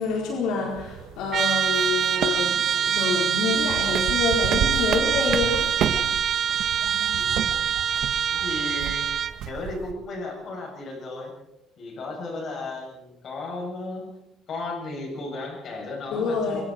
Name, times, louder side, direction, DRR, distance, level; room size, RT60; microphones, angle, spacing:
voice 1, 0.0-5.7 16.1-16.6, left 4 dB, 80° left, 0 dB, 4.5 m, -27 dB
sound 1, 0.7-9.9, right 8 dB, 65° right, 1.6 m, -33 dB
Trumpet, 1.3-9.4, right 8 dB, 40° right, 1.0 m, -24 dB
voice 2, 6.8-7.5 7.8-8.0 8.3-11.3 11.8-14.1 14.5-16.6, left 2 dB, 45° left, 1 dB, 8.0 m, -35 dB
25.5 x 25.5 x 4.6 m, 0.89 s
cardioid pair, 145°, 0 cm